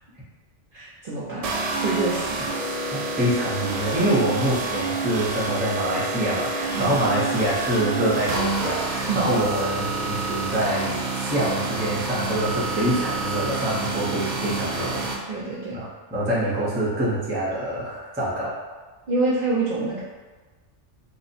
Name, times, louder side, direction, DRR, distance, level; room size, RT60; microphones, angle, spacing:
voice 1, 0.7-1.5 1.8-2.7 6.7-7.0 9.1-9.4 15.3-15.8 19.1-20.0, right 3 dB, 55° right, -7 dB, 0.7 m, -26 dB
sound 1, 1.4-15.1, right 3 dB, 80° right, 0.3 m, -28 dB
voice 2, 3.2-15.3 15.7-15.9 16.1-18.6, right 1 dB, 10° right, -7 dB, 0.6 m, -25 dB
3.0 x 2.1 x 4.1 m, 1.3 s
omnidirectional pair, 1.2 m